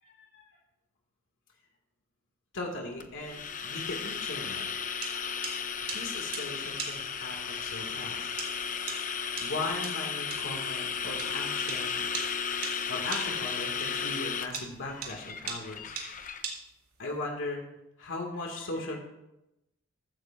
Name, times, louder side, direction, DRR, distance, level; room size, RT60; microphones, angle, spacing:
voice 1, 0.0-0.4 2.5-4.7 5.9-8.3 8.6-12.1 12.9-15.9 17.0-17.6 18.0-19.0, left 2 dB, 60° left, 0 dB, 2.3 m, -38 dB
sound 1, 3.0-16.4, left 6 dB, 35° left, 0.8 m, -34 dB
sound 2, 3.2-17.2, right 6 dB, 75° right, 2.7 m, -42 dB
15.0 x 14.5 x 2.6 m, 0.91 s
head